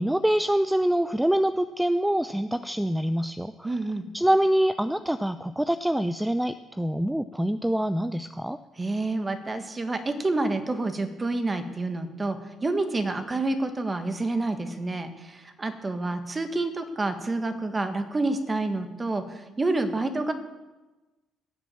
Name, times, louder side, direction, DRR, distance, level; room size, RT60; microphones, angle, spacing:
voice 1, 0.0-3.7 4.1-8.6, right 1 dB, 5° right, 12 dB, 0.6 m, -25 dB
voice 2, 3.6-4.1 8.8-20.3, right 2 dB, 30° right, 8 dB, 1.8 m, -28 dB
16.5 x 7.2 x 7.1 m, 1.1 s
hypercardioid pair, 60°, 0 cm